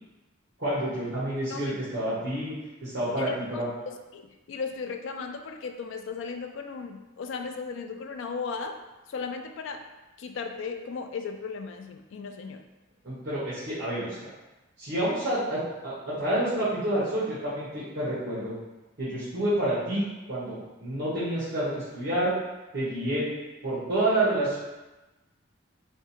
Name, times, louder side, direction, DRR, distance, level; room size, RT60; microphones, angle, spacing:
voice 1, 0.6-2.5 2.8-3.7 13.0-14.3 14.8-18.5 19.0-22.3 22.7-23.3 23.6-24.6, right 1 dB, 50° right, -11 dB, 1.2 m, -28 dB
voice 2, 3.2-8.8 9.1-9.8 10.2-12.6, left 5 dB, 65° left, 5 dB, 0.3 m, -36 dB
3.6 x 2.1 x 4.3 m, 1.1 s
head